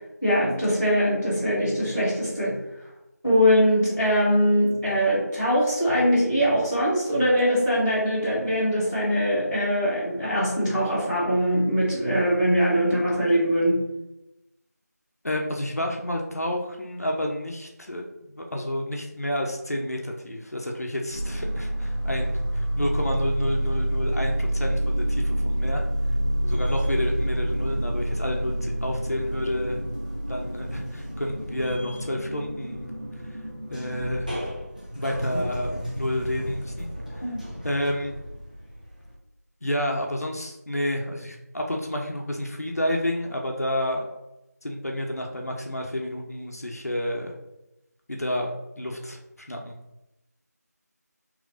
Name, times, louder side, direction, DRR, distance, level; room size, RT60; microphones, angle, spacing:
voice 1, 0.2-2.6 3.2-13.8 37.2-37.4, equal, 5° right, -21 dB, 1.1 m, -22 dB
voice 2, 15.2-25.8 26.4-29.9 30.3-33.3 33.7-34.4 34.9-36.9 37.6-38.2 39.6-44.0 44.6-47.3 48.1-48.5 48.8-49.2 49.5-49.7, left 1 dB, 60° left, 1 dB, 0.7 m, -30 dB
sound 1, 21.1-39.1, right 1 dB, 30° right, 0.6 m, -29 dB
5.1 x 3.1 x 2.6 m, 0.93 s
figure-of-eight pair, 175°, 9 cm